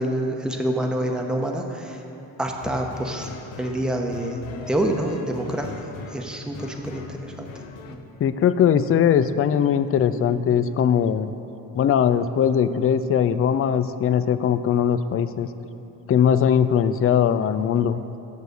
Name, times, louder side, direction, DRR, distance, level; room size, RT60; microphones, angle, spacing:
voice 1, 0.0-2.0 2.4-3.3 3.6-4.4 4.7-7.5 7.9-8.0, right 1 dB, ahead, 2 dB, 1.0 m, -27 dB
sound 1, 2.5-8.0, left 5 dB, 70° left, 0.8 m, -40 dB
voice 2, 8.2-11.3 11.8-15.5 16.1-18.0, left 8 dB, 30° left, 13 dB, 0.4 m, -20 dB
7.2 x 6.2 x 6.7 m, 2.9 s
hypercardioid pair, 50°, 49 cm